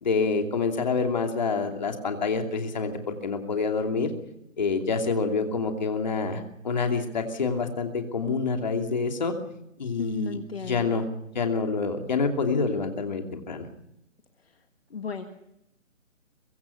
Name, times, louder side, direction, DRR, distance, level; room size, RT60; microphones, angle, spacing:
voice 1, 0.0-4.1 4.6-9.3 9.8-11.1 11.3-13.7, left 4 dB, 35° left, 4 dB, 2.8 m, -27 dB
voice 2, 10.0-11.0 14.9-15.2, left 5 dB, 50° left, 7 dB, 1.7 m, -35 dB
23.5 x 22.0 x 5.8 m, 0.82 s
hypercardioid pair, 175°, 39 cm